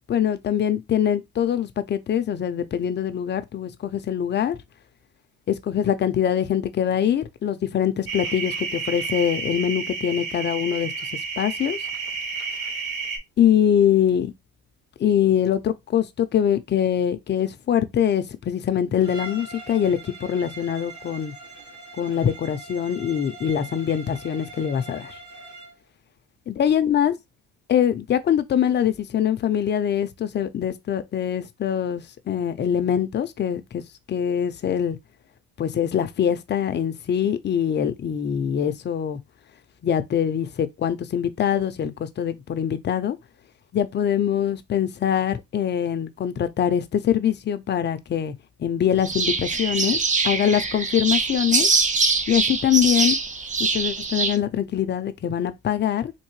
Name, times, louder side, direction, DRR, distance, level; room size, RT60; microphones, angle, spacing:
voice 1, 0.1-4.6 5.5-10.9 11.4-11.8 13.4-14.3 15.0-21.3 22.0-25.2 26.5-27.2 27.7-33.8 34.1-35.0 35.6-39.2 39.8-43.2 43.7-48.3 48.6-50.0 50.2-51.7 52.3-53.2 53.6-56.1, left 9 dB, 30° left, 0.5 m, -23 dB
sound 1, 8.1-13.2, right 5 dB, 75° right, 1.3 m, -31 dB
Bowed string instrument, 19.0-25.8, right 3 dB, 55° right, 1.6 m, -42 dB
sound 2, 49.0-54.4, right 4 dB, 20° right, 0.5 m, -23 dB
3.7 x 2.6 x 3.0 m
cardioid pair, 100°, 36 cm